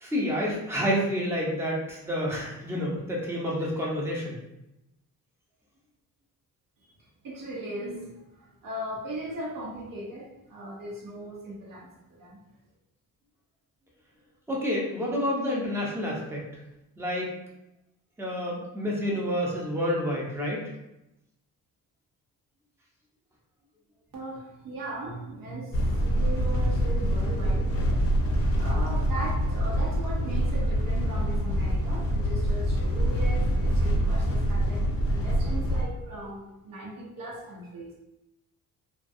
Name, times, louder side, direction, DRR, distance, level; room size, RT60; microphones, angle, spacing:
voice 1, 0.0-4.3 14.5-16.4 17.0-17.3 18.2-20.6, equal, 5° right, -4 dB, 0.7 m, -29 dB
voice 2, 7.2-12.4 24.1-27.7 28.6-37.9, right 1 dB, 65° right, -5 dB, 0.7 m, -38 dB
sound 1, 25.7-35.8, equal, 40° left, 0.5 m, -25 dB
2.3 x 2.2 x 2.6 m, 0.87 s
cardioid pair, 90°, 35 cm